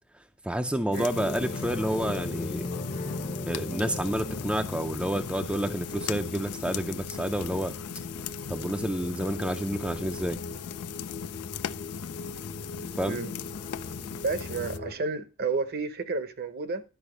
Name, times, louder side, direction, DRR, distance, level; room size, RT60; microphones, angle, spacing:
voice 1, 0.4-2.7 3.5-7.7 8.5-10.4 13.0-13.2, right 1 dB, 5° right, 0.4 m, -29 dB
sound 1, 0.9-14.8, left 8 dB, 85° left, 0.4 m, -39 dB
sound 2, 1.1-15.0, left 2 dB, 35° left, 0.7 m, -38 dB
voice 2, 12.8-13.4 14.2-16.8, right 4 dB, 45° right, 0.8 m, -31 dB
11.5 x 4.9 x 4.9 m
head